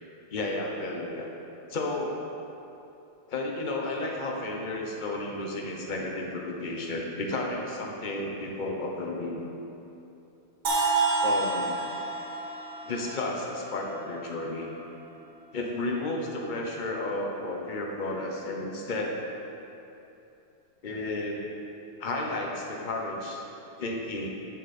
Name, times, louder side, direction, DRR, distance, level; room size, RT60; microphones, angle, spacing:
voice 1, 0.3-1.3 1.7-2.2 3.3-9.4 11.2-11.8 12.8-14.7 15.5-19.1 20.8-21.4 22.0-23.4 23.8-24.3, left 2 dB, 40° left, 0 dB, 0.7 m, -32 dB
sound 1, 10.6-14.6, right 3 dB, 40° right, 1.2 m, -29 dB
10.5 x 7.4 x 4.3 m, 2.9 s
omnidirectional pair, 2.3 m